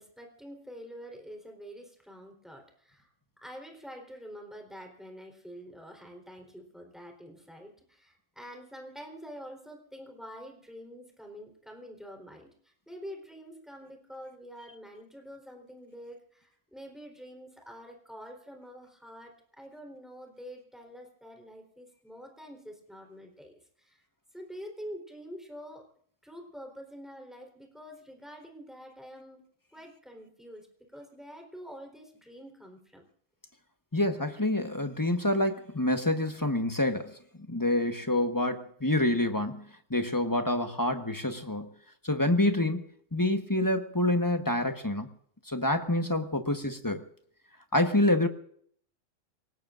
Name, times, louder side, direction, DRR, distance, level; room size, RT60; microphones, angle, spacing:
voice 1, 0.0-3.1 3.4-24.0 24.3-25.9 26.2-29.4 29.7-30.7 30.9-33.0, equal, ahead, 2 dB, 3.9 m, -46 dB
voice 2, 33.9-37.1 37.5-39.6 39.9-41.7 42.0-42.8 43.1-45.1 45.5-47.0 47.7-48.3, left 1 dB, 15° left, 6 dB, 1.2 m, -27 dB
27.5 x 18.5 x 2.6 m, 0.62 s
omnidirectional pair, 1.3 m